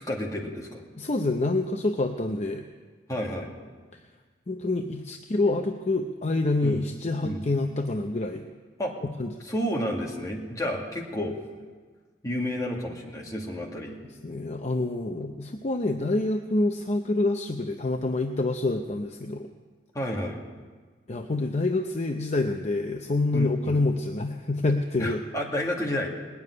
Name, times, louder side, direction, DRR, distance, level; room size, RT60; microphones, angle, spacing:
voice 1, 0.0-0.8 3.1-3.5 6.6-6.8 7.2-7.4 8.8-8.9 9.5-11.4 12.2-14.0 19.9-20.4 23.3-23.8 25.0-26.1, equal, 20° left, -1 dB, 2.0 m, -30 dB
voice 2, 1.0-2.6 4.5-8.4 9.2-9.3 14.2-19.5 21.1-25.2, left 2 dB, 40° left, 5 dB, 0.7 m, -27 dB
19.5 x 7.2 x 9.7 m, 1.5 s
head